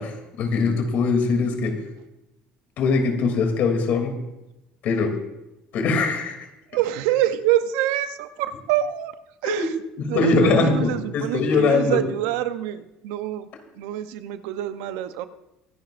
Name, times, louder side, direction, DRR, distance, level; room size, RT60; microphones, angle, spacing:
voice 1, 0.0-1.8 2.8-4.2 4.8-5.2 5.7-6.4 9.4-9.7 10.0-12.0, left 4 dB, 60° left, 4 dB, 2.8 m, -22 dB
voice 2, 6.7-9.1 9.4-9.6 10.1-13.5 13.8-15.3, right 12 dB, 85° right, 11 dB, 0.8 m, -25 dB
23.5 x 11.0 x 2.6 m, 0.93 s
supercardioid pair, 105°, 3 cm